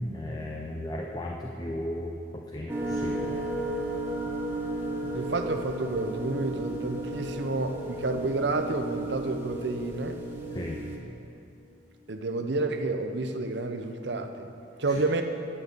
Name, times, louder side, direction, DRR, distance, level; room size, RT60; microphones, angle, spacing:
voice 1, 0.1-3.5 10.5-10.8 14.9-15.0, left 1 dB, 20° left, 0 dB, 0.5 m, -36 dB
sound 1, 2.7-11.0, right 1 dB, 10° right, 0.8 m, -34 dB
voice 2, 5.1-10.2 12.1-14.5 14.8-15.2, right 3 dB, 65° right, 6 dB, 0.6 m, -30 dB
9.1 x 5.5 x 8.0 m, 2.7 s
head